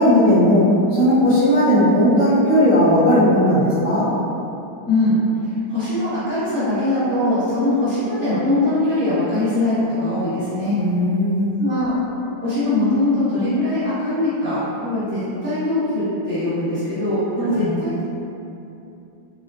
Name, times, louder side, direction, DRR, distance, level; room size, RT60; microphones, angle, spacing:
voice 1, 0.0-4.1 10.7-11.5 17.5-17.8, equal, 55° right, -14 dB, 1.0 m, -16 dB
voice 2, 4.9-5.2 5.7-10.8 11.6-11.9 12.4-18.0, left 2 dB, 10° left, -15 dB, 0.5 m, -21 dB
3.7 x 2.4 x 2.3 m, 2.8 s
omnidirectional pair, 2.2 m